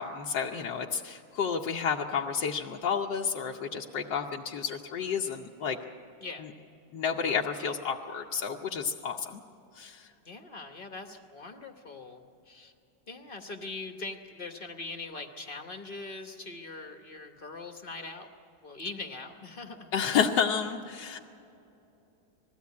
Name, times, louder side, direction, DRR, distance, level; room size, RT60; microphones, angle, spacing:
voice 1, 0.0-5.8 6.4-6.5 6.9-9.4 9.7-10.1 19.9-21.2, left 6 dB, 80° left, 0 dB, 1.5 m, -31 dB
voice 2, 10.2-12.7 13.1-18.3 18.6-19.9, left 3 dB, 35° left, 5 dB, 1.1 m, -42 dB
20.5 x 15.5 x 8.4 m, 2.8 s
omnidirectional pair, 1.9 m